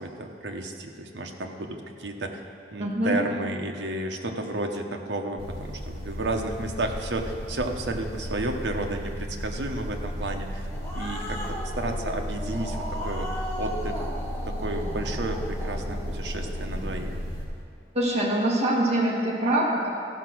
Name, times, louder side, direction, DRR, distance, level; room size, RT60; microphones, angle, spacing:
voice 1, 0.0-2.4 2.7-10.7 10.9-13.3 13.6-14.1 14.5-17.2, right 2 dB, 75° right, 3 dB, 1.0 m, -32 dB
voice 2, 2.8-3.2 17.9-19.9, right 1 dB, 35° right, -4 dB, 1.8 m, -24 dB
sound 1, 5.4-17.4, equal, 30° left, 2.6 m, -34 dB
Growling, 10.4-17.2, equal, 15° left, 1.2 m, -37 dB
15.0 x 6.0 x 6.2 m, 2.6 s
head